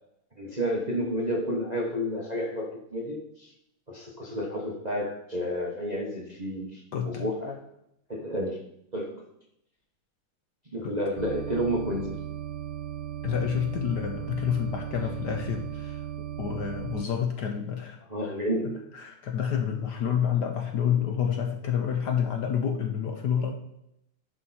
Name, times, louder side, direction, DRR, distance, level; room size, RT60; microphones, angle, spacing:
voice 1, 0.4-3.5 3.9-7.6 8.1-8.6 8.9-9.3 10.7-12.2 18.1-18.9, equal, 30° right, -1 dB, 0.8 m, -31 dB
voice 2, 6.9-7.3 10.8-10.9 13.2-16.1 16.4-18.3 18.6-23.5, left 8 dB, 65° left, 5 dB, 1.2 m, -29 dB
sound 1, 11.2-17.1, right 11 dB, 85° right, 1.5 m, -37 dB
11.0 x 4.6 x 4.2 m, 0.78 s
omnidirectional pair, 2.3 m